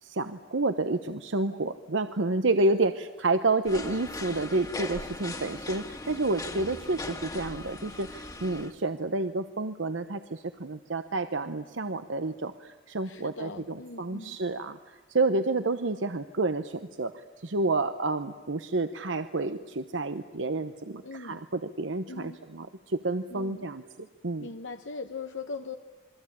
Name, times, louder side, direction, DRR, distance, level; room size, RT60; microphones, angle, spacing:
voice 1, 0.0-24.5, right 2 dB, 80° right, 9 dB, 1.0 m, -29 dB
sound 1, 3.6-8.7, left 2 dB, 20° left, 1.8 m, -39 dB
voice 2, 13.0-14.4 21.0-21.4 22.1-22.4 23.3-23.7 24.4-25.8, left 4 dB, 85° left, 6 dB, 1.1 m, -40 dB
27.5 x 23.0 x 8.7 m, 1.2 s
head